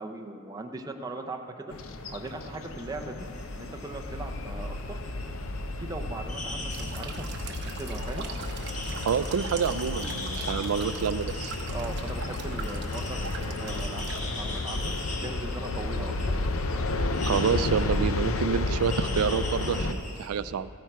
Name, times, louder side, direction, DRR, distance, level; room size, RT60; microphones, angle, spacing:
voice 1, 0.0-1.7 2.1-3.3 3.6-5.0 5.7-7.3 7.6-8.3 11.7-16.5, right 2 dB, 15° right, 3 dB, 0.6 m, -39 dB
sound 1, 1.7-19.9, left 2 dB, 70° left, 0.6 m, -32 dB
sound 2, 3.2-20.3, left 2 dB, 35° left, 1.1 m, -41 dB
sound 3, 6.7-14.2, right 5 dB, 50° right, 0.9 m, -42 dB
voice 2, 9.0-11.5 17.2-20.7, right 7 dB, 85° right, 15 dB, 0.4 m, -28 dB
14.5 x 9.0 x 4.6 m, 2.7 s
head